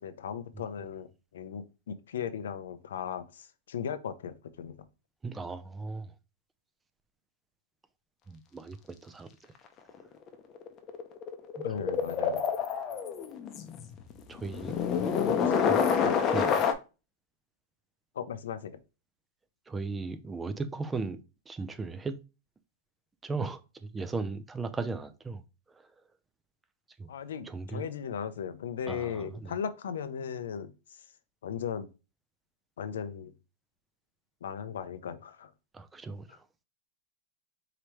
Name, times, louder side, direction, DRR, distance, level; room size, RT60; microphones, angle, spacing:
voice 1, 0.0-4.9 11.6-12.4 15.2-15.5 16.0-16.2 18.2-18.8 27.1-30.7 31.4-31.9 32.8-33.3 34.4-35.5, left 8 dB, 90° left, 0.6 m, -37 dB
voice 2, 5.2-6.1 8.3-9.3 11.6-11.8 14.3-14.7 15.6-15.9 16.3-16.5 19.7-21.2 21.5-22.2 23.2-25.4 25.7-25.8 27.0-27.1 27.4-27.9 28.9-29.5 35.7-36.4, right 3 dB, 10° right, 0.4 m, -37 dB
sound 1, 9.9-10.0 10.3-16.7, left 7 dB, 30° left, 0.7 m, -28 dB
4.8 x 2.9 x 3.1 m
supercardioid pair, 140°, 0 cm